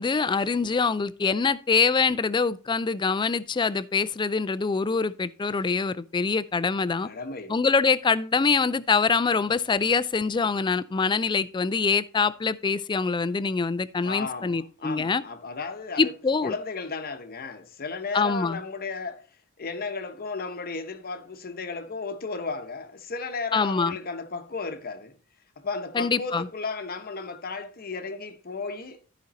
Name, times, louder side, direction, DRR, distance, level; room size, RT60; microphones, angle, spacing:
voice 1, 0.0-7.1 7.5-15.2 16.0-16.5 18.1-18.6 23.5-24.0 25.9-26.5, left 4 dB, 20° left, 0.3 m, -24 dB
voice 2, 7.0-7.5 14.0-16.1 16.4-19.3 19.6-25.1 25.6-29.0, left 4 dB, 40° left, 0.9 m, -34 dB
13.0 x 5.2 x 4.1 m
head